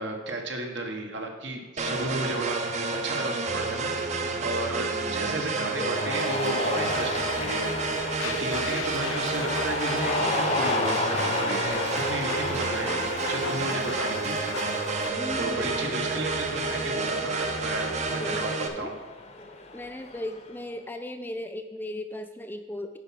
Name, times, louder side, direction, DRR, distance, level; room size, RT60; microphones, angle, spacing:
voice 1, 0.0-2.6 3.0-4.0 4.4-7.7 8.2-14.4 15.4-18.9, right 2 dB, 65° right, 3 dB, 1.4 m, -33 dB
sound 1, 1.8-18.7, right 3 dB, 35° right, 0.8 m, -30 dB
voice 2, 4.8-5.2 12.8-13.0 15.1-16.0 18.2-18.9 19.7-23.0, left 1 dB, 10° left, 6 dB, 0.4 m, -37 dB
Cheering, 5.7-20.5, left 2 dB, 35° left, 0.8 m, -33 dB
sound 2, 8.2-15.1, left 6 dB, 75° left, 0.5 m, -38 dB
10.0 x 4.7 x 5.8 m, 1.2 s
head